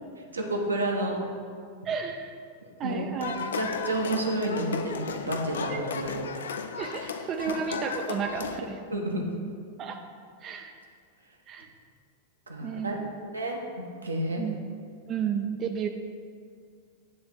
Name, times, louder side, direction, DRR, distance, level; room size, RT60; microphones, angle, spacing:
voice 1, 0.3-1.2 2.8-6.2 8.9-9.2 12.5-12.9 13.3-13.6 14.0-14.5, right 1 dB, 80° right, 1 dB, 0.9 m, -30 dB
voice 2, 1.9-2.3 2.8-3.4 5.7-5.9 6.8-8.8 9.8-10.0 10.4-10.7 11.5-11.7 12.6-13.1 14.4-14.6 15.1-15.9, right 7 dB, 30° right, 4 dB, 0.4 m, -32 dB
sound 1, 3.2-8.6, left 5 dB, 65° left, 0.4 m, -35 dB
9.6 x 3.4 x 5.7 m, 2.2 s
figure-of-eight pair, 90°, 0 cm